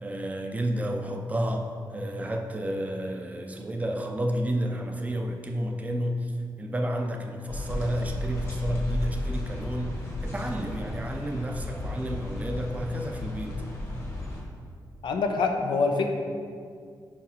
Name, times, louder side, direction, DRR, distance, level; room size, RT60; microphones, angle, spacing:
voice 1, 0.0-13.6, equal, 20° right, 3 dB, 0.5 m, -31 dB
sound 1, 7.5-14.4, left 1 dB, 35° left, 1.4 m, -34 dB
voice 2, 15.0-16.1, left 4 dB, 80° left, 4 dB, 0.7 m, -25 dB
5.1 x 4.9 x 5.5 m, 2.2 s
wide cardioid pair, 165°, 8 cm